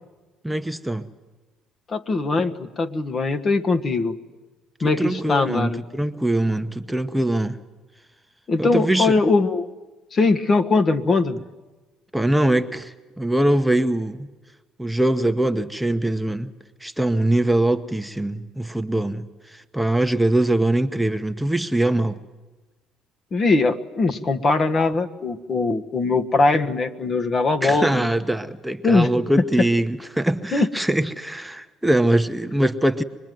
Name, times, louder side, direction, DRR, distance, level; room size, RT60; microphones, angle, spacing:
voice 1, 0.4-1.1 4.8-7.6 8.6-9.1 12.1-14.3 14.8-16.5 16.8-22.2 27.6-33.0, right 1 dB, 5° right, 8 dB, 0.9 m, -22 dB
voice 2, 1.9-4.2 4.8-5.8 8.5-9.7 10.1-11.4 23.3-28.1 28.8-29.1 30.5-30.7, left 3 dB, 40° left, 7 dB, 1.4 m, -21 dB
25.0 x 21.0 x 9.3 m, 1.2 s
supercardioid pair, 80°, 0 cm